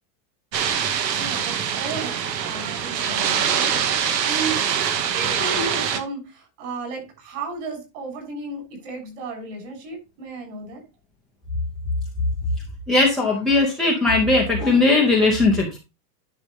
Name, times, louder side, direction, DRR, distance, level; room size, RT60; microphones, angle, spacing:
sound 1, 0.5-6.0, right 8 dB, 85° right, 1.9 m, -24 dB
voice 1, 1.1-2.1 2.4-4.7 5.1-10.8, right 3 dB, 45° right, 2 dB, 6.6 m, -34 dB
voice 2, 12.9-15.8, left 3 dB, ahead, 0 dB, 0.5 m, -18 dB
10.5 x 6.4 x 3.5 m, 0.26 s
supercardioid pair, 175°, 49 cm